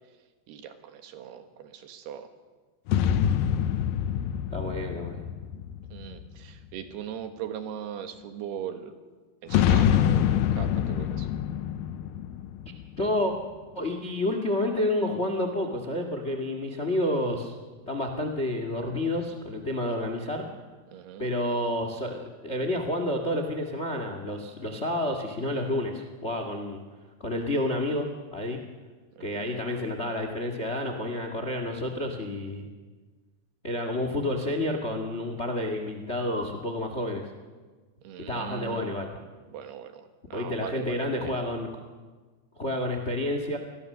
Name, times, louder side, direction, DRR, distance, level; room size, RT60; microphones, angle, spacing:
voice 1, 0.5-2.3 5.9-8.9 9.4-11.3 20.9-21.3 29.2-29.6 38.0-38.9 39.5-41.1, right 9 dB, 80° right, 7 dB, 3.5 m, -39 dB
sound 1, 2.9-6.6 9.5-13.3, left 9 dB, 75° left, 2.3 m, -26 dB
voice 2, 4.5-5.2 13.0-13.3 13.7-17.5 17.9-20.4 21.2-26.8 27.2-28.6 29.2-32.7 33.6-37.2 38.3-39.1 40.3-41.7 42.6-43.6, left 1 dB, 35° left, 5 dB, 1.0 m, -29 dB
27.0 x 20.0 x 6.8 m, 1.4 s
omnidirectional pair, 4.7 m